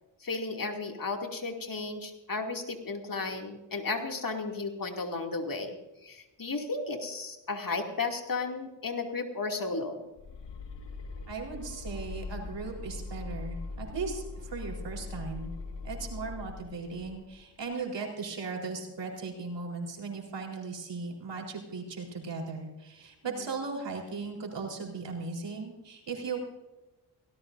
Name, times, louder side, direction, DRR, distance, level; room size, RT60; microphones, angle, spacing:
voice 1, 0.2-5.7 6.0-10.0, left 3 dB, 45° left, 3 dB, 2.7 m, -34 dB
sound 1, 10.2-17.4, left 3 dB, 70° left, 1.5 m, -41 dB
voice 2, 11.3-15.5 15.8-26.4, right 4 dB, 70° right, 1 dB, 4.2 m, -37 dB
18.0 x 17.5 x 2.7 m, 1.0 s
supercardioid pair, 50°, 45 cm